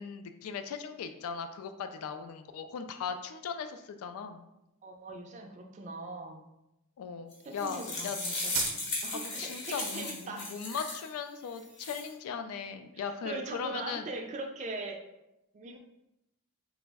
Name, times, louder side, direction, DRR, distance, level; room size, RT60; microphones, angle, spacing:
voice 1, 0.0-4.4 7.0-8.2 9.1-14.1, left 6 dB, 75° left, 8 dB, 0.3 m, -38 dB
voice 2, 4.8-6.5 7.4-10.5 12.9-15.0 15.5-15.8, right 2 dB, 30° right, 3 dB, 0.3 m, -41 dB
sound 1, 7.3-11.1 11.6-12.1, left 2 dB, 50° left, 0.8 m, -36 dB
sound 2, 8.5-9.6, right 6 dB, 90° right, 0.6 m, -37 dB
3.3 x 2.0 x 3.4 m, 0.89 s
head